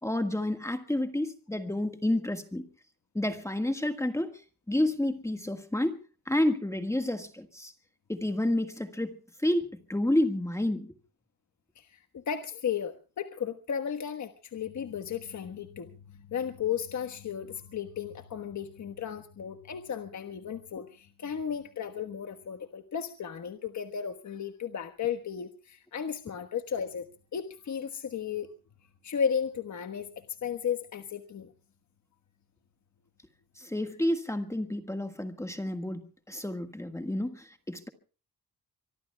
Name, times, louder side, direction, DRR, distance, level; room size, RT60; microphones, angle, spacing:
voice 1, 0.0-2.7 3.1-4.3 4.7-6.0 6.3-7.7 8.1-10.9 33.6-36.0 36.3-37.9, left 1 dB, 10° left, 7 dB, 1.6 m, -30 dB
voice 2, 11.7-27.1 27.3-28.5 29.0-31.5, left 7 dB, 50° left, 7 dB, 1.4 m, -34 dB
24.5 x 23.5 x 2.3 m, 0.38 s
cardioid pair, 140°, 38 cm